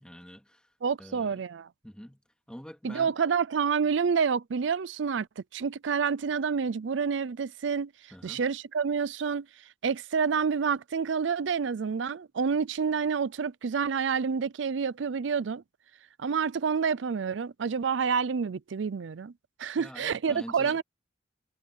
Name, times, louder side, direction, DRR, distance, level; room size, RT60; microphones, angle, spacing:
voice 1, 0.0-0.7 1.0-1.4 1.8-2.2 2.5-3.1 8.1-8.5 19.8-20.8, equal, 5° left, 2.4 m, -45 dB
voice 2, 0.8-1.7 2.8-7.9 8.2-9.5 9.8-15.6 16.2-19.3 19.6-20.8, right 6 dB, 80° right, 0.5 m, -28 dB
head